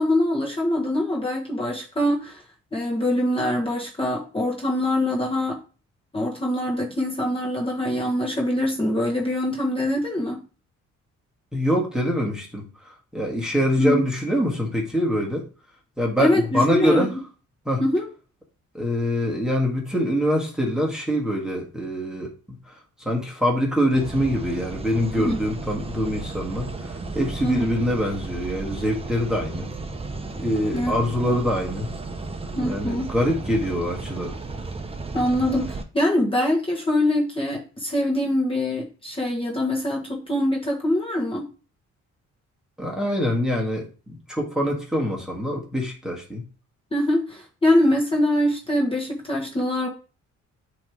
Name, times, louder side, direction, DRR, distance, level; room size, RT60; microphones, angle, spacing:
voice 1, 0.0-2.4 2.7-5.6 6.1-10.4 13.8-14.0 16.2-17.1 17.8-18.1 25.2-25.4 27.4-27.7 30.7-30.9 31.2-31.4 32.5-33.1 35.1-41.5 46.9-49.9, left 1 dB, 20° left, -2 dB, 1.5 m, -23 dB
voice 2, 11.5-12.7 13.1-15.5 16.0-17.1 17.6-17.8 18.7-22.3 22.7-22.8 23.0-29.7 30.4-31.9 32.6-34.3 42.8-43.9 44.3-46.4, equal, ahead, -2 dB, 1.6 m, -24 dB
sound 1, 23.9-35.8, right 3 dB, 20° right, 0.8 m, -34 dB
8.5 x 3.1 x 3.5 m, 0.35 s
cardioid pair, 90°, 30 cm